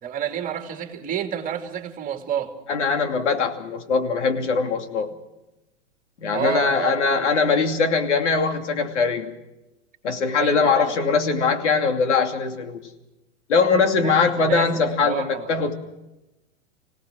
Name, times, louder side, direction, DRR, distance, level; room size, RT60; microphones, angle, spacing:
voice 1, 0.0-2.5 6.3-7.3 10.3-10.9 13.9-15.7, right 9 dB, 25° right, 4 dB, 2.7 m, -30 dB
voice 2, 2.7-5.1 6.2-9.3 10.0-12.8 13.5-15.7, left 4 dB, 80° left, 5 dB, 2.8 m, -21 dB
26.5 x 17.5 x 6.2 m, 0.99 s
hypercardioid pair, 130°, 35 cm